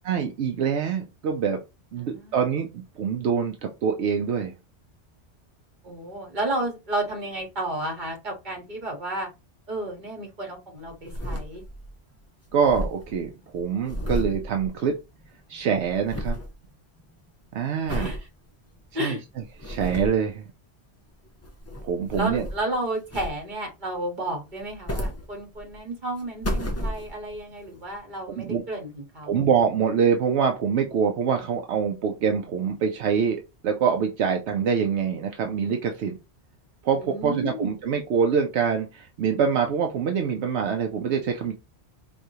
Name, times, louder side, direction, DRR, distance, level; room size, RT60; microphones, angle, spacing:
voice 1, 0.0-1.6 1.9-4.5 12.5-14.9 15.5-16.4 17.5-18.1 18.9-19.2 19.6-20.5 21.8-22.5 28.3-28.6 29.2-36.2 36.8-41.5, right 6 dB, 80° right, 3 dB, 0.9 m, -25 dB
voice 2, 2.0-2.4 5.8-9.3 9.7-11.6 17.9-18.2 18.9-19.2 22.1-29.4 36.9-37.7, right 1 dB, 45° right, 1 dB, 1.5 m, -32 dB
sound 1, 10.8-12.0 12.2-12.3 12.5-15.3 15.5-16.5 17.0-17.3 17.9-18.2 18.8-18.9 19.4-20.3 21.3-22.7 23.1-23.7 24.5-25.8 26.2-27.4 27.9-28.0, equal, 20° left, 0.5 m, -32 dB
4.8 x 2.7 x 2.7 m, 0.26 s
omnidirectional pair, 1.1 m